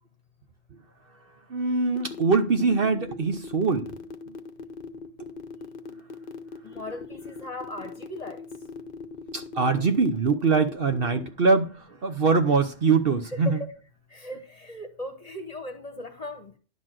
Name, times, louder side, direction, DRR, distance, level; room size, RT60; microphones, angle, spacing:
voice 1, 1.5-4.0 9.3-13.6, right 4 dB, 50° right, 1.0 m, -23 dB
sound 1, 2.0-11.3, left 4 dB, 45° left, 0.9 m, -40 dB
voice 2, 6.6-8.4 13.3-13.7 14.1-16.5, left 1 dB, 30° left, 1.2 m, -38 dB
11.0 x 4.2 x 7.6 m
omnidirectional pair, 1.3 m